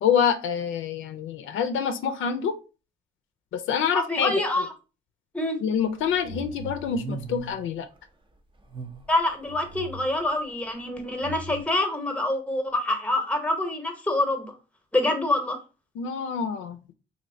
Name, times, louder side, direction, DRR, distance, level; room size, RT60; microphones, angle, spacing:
voice 1, 0.0-2.5 3.5-4.3 5.6-7.9 16.0-16.8, left 7 dB, 80° left, 9 dB, 0.5 m, -26 dB
voice 2, 3.9-4.7 5.3-5.6 9.1-14.5 14.9-15.6, left 1 dB, 5° left, 5 dB, 0.8 m, -26 dB
sound 1, 5.9-7.7 8.6-10.3 11.2-11.6, right 2 dB, 25° right, 0.5 m, -39 dB
3.1 x 2.6 x 2.6 m, 0.32 s
cardioid pair, 90°, 20 cm